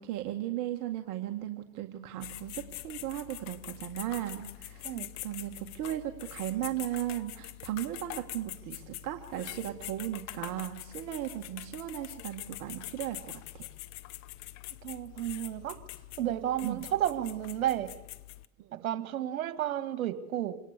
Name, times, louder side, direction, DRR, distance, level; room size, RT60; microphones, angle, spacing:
voice 1, 0.0-5.0 5.2-13.7 16.6-16.9 18.6-18.9, right 13 dB, 45° right, 4 dB, 1.9 m, -36 dB
sound 1, 2.2-18.5, left 16 dB, 40° left, 0.9 m, -44 dB
voice 2, 14.8-15.8 16.2-17.9 18.7-20.6, right 12 dB, 70° right, 13 dB, 1.9 m, -32 dB
26.5 x 18.5 x 6.8 m, 0.92 s
hypercardioid pair, 105°, 42 cm